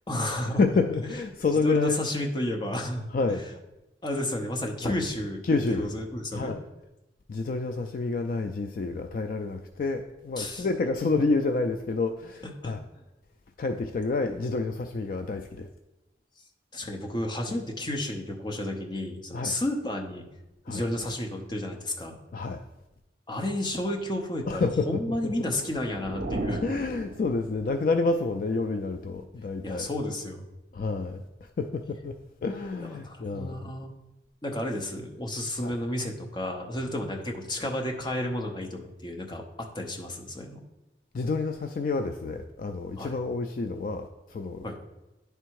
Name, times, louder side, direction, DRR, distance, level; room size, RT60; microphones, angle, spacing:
voice 1, 0.1-0.6 1.6-3.1 4.0-5.4 5.7-6.6 10.4-10.7 12.4-12.7 16.7-20.2 20.7-22.2 23.3-26.6 29.6-30.4 32.8-33.9 34.4-40.6 43.0-43.1 44.6-44.8, left 1 dB, 25° left, 2 dB, 0.7 m, -32 dB
voice 2, 0.6-2.0 3.1-3.4 4.8-5.0 5.4-5.9 6.3-6.6 7.3-12.8 13.6-15.7 19.3-19.6 20.7-20.8 22.3-22.6 24.5-25.3 26.6-29.9 30.7-33.7 35.6-35.7 41.1-44.7, left 3 dB, 50° left, 6 dB, 0.3 m, -29 dB
sound 1, 25.2-27.9, right 1 dB, 55° right, 0.7 m, -36 dB
9.8 x 3.4 x 4.6 m, 0.98 s
head